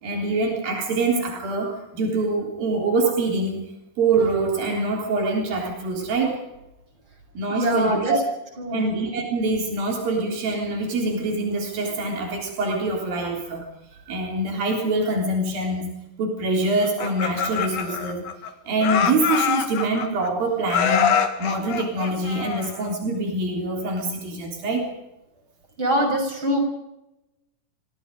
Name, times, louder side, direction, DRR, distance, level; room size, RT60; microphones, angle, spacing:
voice 1, 0.0-3.6 4.0-6.4 7.4-8.2 8.7-13.7 14.1-15.9 16.2-18.2 18.7-21.1 21.4-24.9, right 2 dB, 80° right, 0 dB, 5.4 m, -24 dB
voice 2, 7.5-8.1 8.6-8.8 25.8-26.6, equal, 35° right, 4 dB, 7.5 m, -23 dB
Laughter, 16.8-18.5 18.8-20.3 20.7-22.9, left 7 dB, 80° left, 3.9 m, -24 dB
28.5 x 25.0 x 5.3 m, 0.93 s
omnidirectional pair, 4.1 m